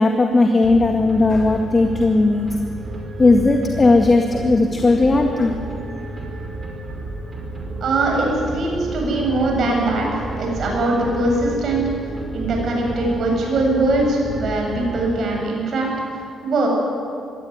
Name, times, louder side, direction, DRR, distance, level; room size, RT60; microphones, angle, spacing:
voice 1, 0.0-2.5 3.2-5.6, left 2 dB, 30° left, 3 dB, 1.9 m, -16 dB
sound 1, 0.6-15.7, right 2 dB, 35° right, 5.5 m, -32 dB
voice 2, 7.8-11.9 12.3-16.7, right 2 dB, 60° right, 0 dB, 7.7 m, -21 dB
21.5 x 16.5 x 9.6 m, 2.4 s
cardioid pair, 90°, 0 cm